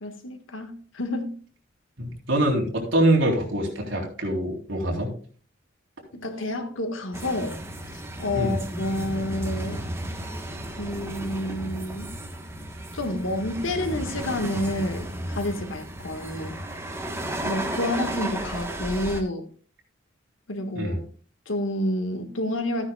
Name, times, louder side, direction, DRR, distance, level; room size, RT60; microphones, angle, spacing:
voice 1, 0.0-1.4 6.1-7.6 7.9-9.9 10.8-12.2 12.9-16.6 17.4-19.5 20.5-21.0 21.5-22.9, left 1 dB, 80° left, 1.6 m, -29 dB
voice 2, 2.0-5.1 8.3-8.6 20.8-21.0, right 1 dB, 75° right, 3.6 m, -24 dB
sound 1, 7.1-19.2, right 1 dB, 15° right, 1.2 m, -34 dB
13.5 x 9.7 x 2.3 m
head